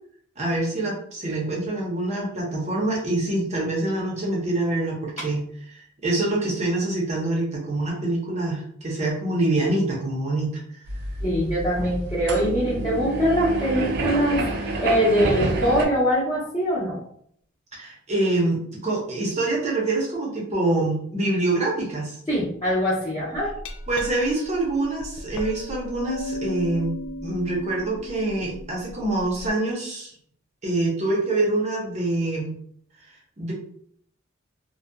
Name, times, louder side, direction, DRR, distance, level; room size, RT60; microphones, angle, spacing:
voice 1, 0.4-5.4 5.7-10.5 17.7-22.1 23.9-26.9 27.2-30.1 30.6-32.5 33.4-33.5, right 2 dB, 35° right, -2 dB, 0.7 m, -25 dB
sound 1, 10.9-15.9, right 2 dB, 55° right, 0.4 m, -27 dB
voice 2, 11.2-14.4 14.8-17.0 22.3-23.5, equal, 20° left, -10 dB, 0.8 m, -23 dB
Glass, 23.3-29.5, left 1 dB, 75° left, 0.3 m, -36 dB
2.6 x 2.2 x 2.2 m, 0.65 s
head